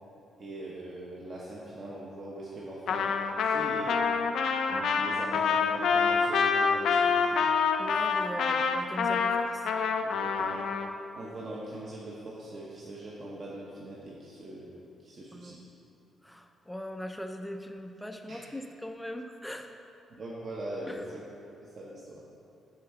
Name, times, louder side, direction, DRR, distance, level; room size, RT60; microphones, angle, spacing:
voice 1, 0.4-3.1 3.4-4.0 4.9-7.4 10.0-10.7 11.2-15.6 18.3-18.4 20.1-21.3 21.6-22.2, right 1 dB, 40° right, -5 dB, 0.8 m, -41 dB
Trumpet, 2.9-10.9, left 5 dB, 65° left, 0.4 m, -26 dB
Piano, 4.7-11.1, equal, 55° right, 1.7 m, -47 dB
voice 2, 7.8-9.7 15.3-15.7 16.2-19.7 20.9-21.1, equal, 5° left, 5 dB, 0.4 m, -40 dB
6.7 x 4.4 x 5.8 m, 2.7 s
cardioid pair, 165°, 0 cm